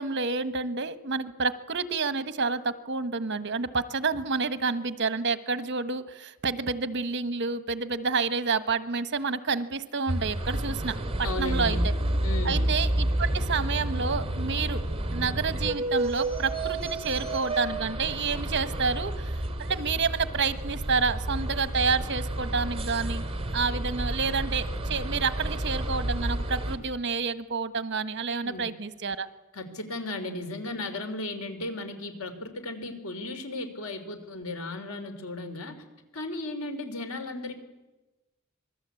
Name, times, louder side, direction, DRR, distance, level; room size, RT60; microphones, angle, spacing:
voice 1, 0.0-11.9 12.4-14.8 15.1-23.2 23.5-29.3, right 4 dB, 55° right, 13 dB, 1.3 m, -29 dB
sound 1, 10.1-26.8, right 1 dB, 30° right, 2.5 m, -30 dB
voice 2, 11.2-11.9 12.2-12.7 28.4-28.7 29.5-35.8 36.1-37.5, left 2 dB, 90° left, 7 dB, 3.9 m, -35 dB
26.0 x 21.0 x 8.4 m, 1.1 s
head